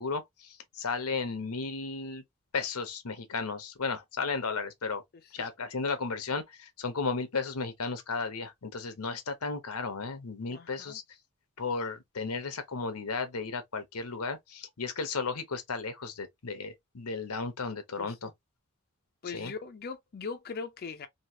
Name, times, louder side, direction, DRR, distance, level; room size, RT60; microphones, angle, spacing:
voice 1, 0.0-2.2 2.5-5.0 5.3-11.0 11.6-18.3 19.2-19.5, left 4 dB, 90° left, 0.9 m, -34 dB
voice 2, 10.5-11.0 18.0-18.3 19.2-21.1, left 5 dB, 45° left, 0.5 m, -40 dB
3.0 x 2.8 x 2.7 m
head